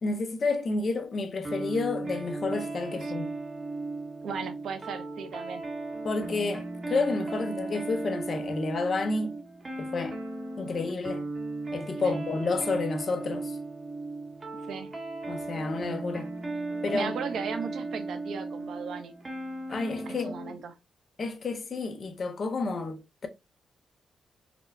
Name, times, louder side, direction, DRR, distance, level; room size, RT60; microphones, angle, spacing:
voice 1, 0.0-3.3 6.0-9.3 9.8-10.2 10.6-11.3 11.7-13.5 15.3-16.3 16.8-17.1 19.7-20.4 21.2-23.3, left 3 dB, 40° left, 0.6 m, -30 dB
sound 1, 1.4-20.6, right 2 dB, 25° right, 0.8 m, -36 dB
voice 2, 4.2-5.6 12.0-12.2 14.7-14.9 16.9-19.1 20.1-20.7, right 6 dB, 70° right, 0.5 m, -37 dB
4.2 x 2.1 x 2.5 m
wide cardioid pair, 155°, 0 cm